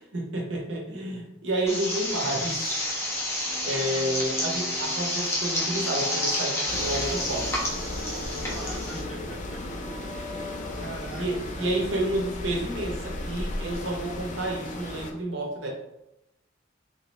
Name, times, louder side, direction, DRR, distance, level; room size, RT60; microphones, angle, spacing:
voice 1, 0.0-2.6 3.2-3.4 3.6-7.6 11.2-15.7, right 1 dB, 65° right, -1 dB, 0.7 m, -30 dB
sound 1, 1.7-9.0, left 1 dB, 15° left, 0.9 m, -30 dB
sound 2, 3.4-12.1, equal, 30° right, 1.5 m, -42 dB
sound 3, 6.7-15.1, left 1 dB, 40° left, 0.4 m, -35 dB
voice 2, 8.1-9.2 9.5-9.6 10.7-11.9, right 1 dB, 5° right, -10 dB, 1.4 m, -42 dB
3.4 x 2.8 x 3.0 m, 0.89 s
head